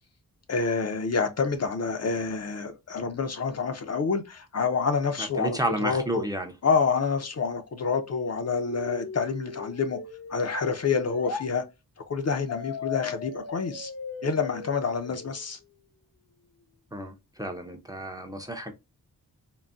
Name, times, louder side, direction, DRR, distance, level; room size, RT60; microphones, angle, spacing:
voice 1, 0.5-6.2 6.6-10.0 10.3-11.6 12.1-13.9 14.2-15.6, left 5 dB, 45° left, 0.5 m, -28 dB
voice 2, 5.2-6.5 16.9-18.7, right 1 dB, 10° right, 0.5 m, -31 dB
sound 1, 8.6-11.5 12.5-15.5, left 5 dB, 85° left, 0.8 m, -38 dB
3.8 x 2.0 x 2.3 m
wide cardioid pair, 95°, 37 cm